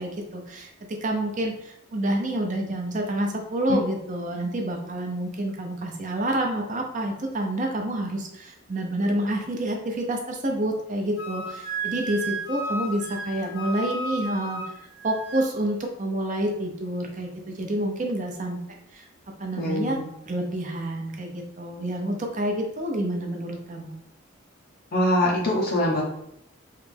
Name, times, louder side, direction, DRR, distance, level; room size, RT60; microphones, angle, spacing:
voice 1, 0.0-14.8 15.0-18.6 18.9-19.1 19.4-20.0 20.3-24.0, right 1 dB, 40° right, 2 dB, 0.6 m, -28 dB
Wind instrument woodwind instrument, 11.2-15.4, right 2 dB, 70° left, 1.4 m, -33 dB
voice 2, 19.6-20.0 24.9-26.0, left 1 dB, 45° left, -1 dB, 0.7 m, -23 dB
3.3 x 3.0 x 3.4 m, 0.74 s
head